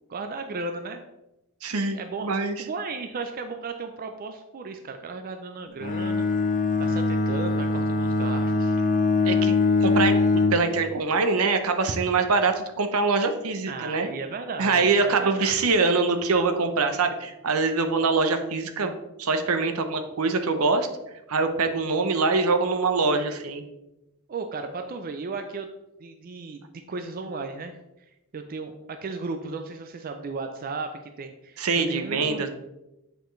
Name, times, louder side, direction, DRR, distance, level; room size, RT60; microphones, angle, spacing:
voice 1, 0.1-1.0 1.9-2.3 2.6-6.3 6.8-8.8 13.7-15.5 24.3-25.7 26.0-26.6 26.9-27.8 28.3-31.6 31.9-32.5, right 3 dB, 40° right, 6 dB, 0.4 m, -35 dB
voice 2, 1.6-2.6 9.3-9.5 9.8-14.1 14.6-18.9 19.2-20.9 21.3-23.6 31.6-32.5, right 4 dB, 75° right, 8 dB, 0.7 m, -24 dB
Bowed string instrument, 5.8-10.7, left 3 dB, 35° left, 0.4 m, -22 dB
7.9 x 4.3 x 3.1 m, 0.94 s
head